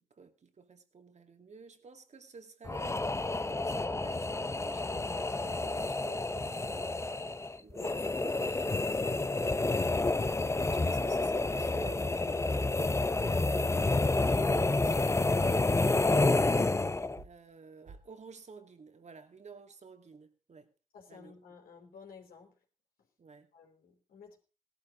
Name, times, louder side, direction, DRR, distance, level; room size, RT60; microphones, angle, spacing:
voice 1, 0.0-5.1 5.4-7.0 7.6-9.7 10.7-12.7 13.2-16.5 17.2-20.7 21.1-21.4 23.2-23.5, right 5 dB, 50° right, 2.3 m, -52 dB
sound 1, 2.7-17.2, left 2 dB, 20° left, 0.8 m, -29 dB
sound 2, 17.2-17.5 17.9-18.1, right 4 dB, 70° right, 4.4 m, -55 dB
voice 2, 20.9-22.6 23.0-23.1 23.5-24.4, left 5 dB, 75° left, 4.1 m, -54 dB
17.5 x 12.0 x 3.8 m
supercardioid pair, 45°, 15 cm